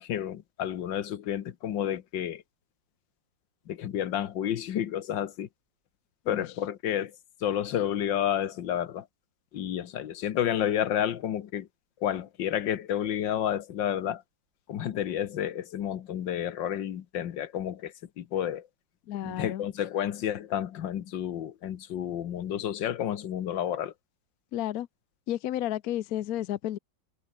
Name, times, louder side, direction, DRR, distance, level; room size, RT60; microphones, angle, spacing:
voice 1, 0.0-2.4 3.7-5.5 6.3-7.2 7.4-9.1 9.5-11.7 12.0-14.2 14.7-18.7 19.2-23.9, left 10 dB, 90° left, 1.8 m, -30 dB
voice 2, 19.1-19.6 24.5-24.9 25.3-26.8, left 12 dB, 60° left, 1.1 m, -31 dB
omnidirectional pair, 1.9 m